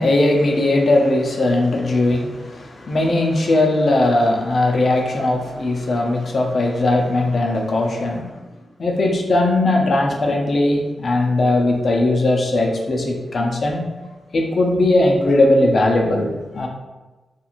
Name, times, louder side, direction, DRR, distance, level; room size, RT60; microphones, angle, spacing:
voice 1, 0.0-8.3 8.8-13.9 14.3-16.7, left 2 dB, 50° left, 1 dB, 0.4 m, -18 dB
2.9 x 2.4 x 2.4 m, 1.2 s
wide cardioid pair, 150°, 0 cm